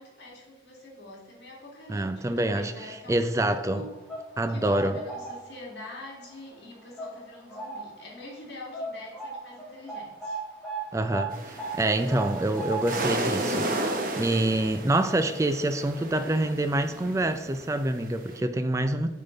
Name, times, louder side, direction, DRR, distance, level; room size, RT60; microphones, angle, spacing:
voice 1, 0.0-4.0 4.5-10.4, left 1 dB, 65° left, -3 dB, 2.2 m, -45 dB
voice 2, 1.9-2.7 3.1-3.8 4.4-5.0 10.9-19.1, right 1 dB, 15° right, 9 dB, 0.4 m, -26 dB
sound 1, 3.8-5.8 6.2-6.4 7.0-8.1 8.3-8.4 8.7-15.8 16.1-16.2 17.1-17.2 17.5-17.6, right 3 dB, ahead, 1.6 m, -38 dB
sound 2, 11.3-18.4, right 1 dB, 45° right, 0.9 m, -33 dB
9.0 x 3.7 x 3.9 m, 1.1 s
head